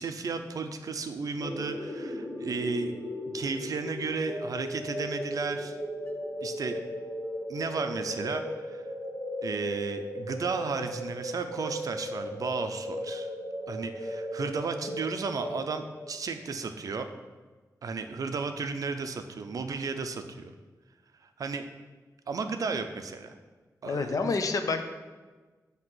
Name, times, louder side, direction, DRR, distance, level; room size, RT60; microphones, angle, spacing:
voice 1, 0.0-2.9 3.3-5.8 6.4-6.8 7.5-8.8 9.4-13.3 13.7-17.1 17.8-20.5 21.4-21.6 22.3-23.3 23.8-24.4, right 4 dB, 60° right, 8 dB, 0.4 m, -34 dB
sound 1, 1.4-16.1, equal, 40° left, 0.9 m, -36 dB
voice 2, 23.8-24.9, left 4 dB, 60° left, 7 dB, 0.5 m, -28 dB
7.6 x 2.8 x 6.0 m, 1.3 s
wide cardioid pair, 175°, 7 cm